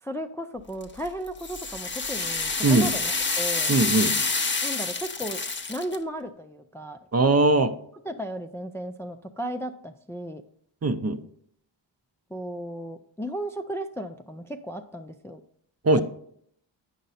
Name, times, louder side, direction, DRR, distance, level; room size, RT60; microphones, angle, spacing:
voice 1, 0.0-3.7 4.6-5.4 5.7-7.0 8.1-10.4 12.3-15.4, equal, 5° left, 5 dB, 0.4 m, -35 dB
sound 1, 0.8-6.0, left 3 dB, 25° left, 0.8 m, -28 dB
voice 2, 3.7-4.1 7.1-7.7 10.8-11.2 15.8-16.0, right 2 dB, 30° right, 9 dB, 0.6 m, -20 dB
9.2 x 5.2 x 4.1 m, 0.67 s
cardioid pair, 60°, 47 cm